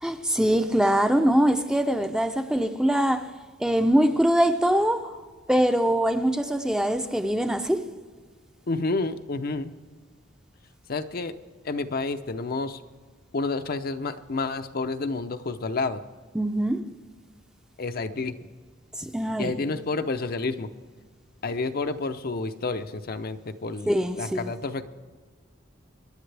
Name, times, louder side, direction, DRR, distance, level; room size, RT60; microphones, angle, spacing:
voice 1, 0.0-3.3 3.6-5.2 5.5-7.9 16.3-16.8 19.0-19.5 23.9-24.5, equal, 5° right, 0.6 m, -23 dB
voice 2, 8.7-9.7 10.9-11.3 11.6-12.8 13.3-16.0 17.8-18.3 19.4-20.7 21.4-24.8, left 3 dB, 50° left, 0.6 m, -29 dB
25.5 x 10.5 x 3.4 m
head